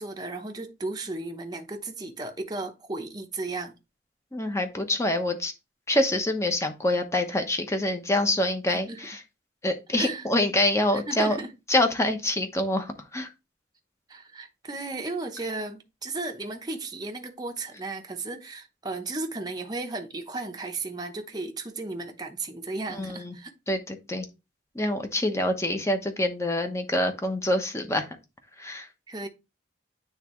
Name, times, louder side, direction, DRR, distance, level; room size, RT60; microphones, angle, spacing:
voice 1, 0.0-3.7 8.7-9.0 9.9-10.3 10.9-11.5 14.1-23.5 29.1-29.3, right 3 dB, 20° right, 0.8 m, -35 dB
voice 2, 4.3-5.5 5.9-9.2 9.6-11.4 11.7-13.3 22.9-23.3 23.7-24.3 24.7-28.1 28.6-28.9, left 1 dB, 15° left, 1.0 m, -26 dB
9.2 x 3.6 x 3.0 m
head